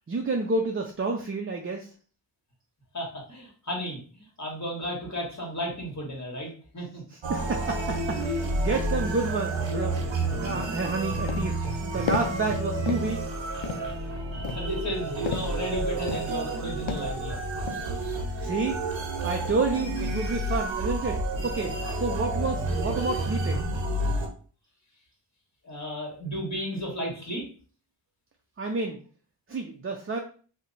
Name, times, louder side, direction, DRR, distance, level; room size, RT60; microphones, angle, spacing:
voice 1, 0.1-1.9 7.1-13.2 18.4-18.8 19.2-23.6 28.6-29.0 29.5-30.2, right 3 dB, 30° right, 2 dB, 0.4 m, -30 dB
voice 2, 2.9-7.0 14.3-17.4 18.3-18.6 25.6-27.5, equal, 40° left, -2 dB, 1.5 m, -34 dB
sound 1, 7.2-24.3, right 2 dB, 75° right, 0.7 m, -30 dB
sound 2, 10.8-10.9 11.3-11.7 12.1-12.5 12.9-13.3 13.6-14.0 14.4-15.7 16.1-16.5 16.9-17.2 17.7-18.1, left 5 dB, 85° left, 0.5 m, -34 dB
2.8 x 2.2 x 3.9 m, 0.41 s
wide cardioid pair, 45°, 45 cm